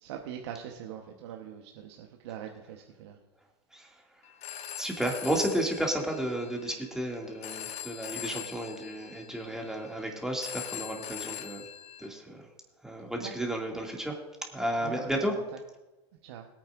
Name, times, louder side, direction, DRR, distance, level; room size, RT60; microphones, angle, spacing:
voice 1, 0.0-3.2 13.2-13.3 14.8-15.1 16.2-16.5, right 9 dB, 70° right, 3 dB, 1.0 m, -42 dB
Telephone, 4.2-12.1, left 11 dB, 45° left, 1.0 m, -42 dB
voice 2, 4.8-11.7 12.0-12.4 12.8-14.2 14.5-15.4, right 1 dB, 5° right, 0 dB, 2.2 m, -32 dB
21.0 x 9.0 x 2.5 m, 1.1 s
hypercardioid pair, 90°, 14 cm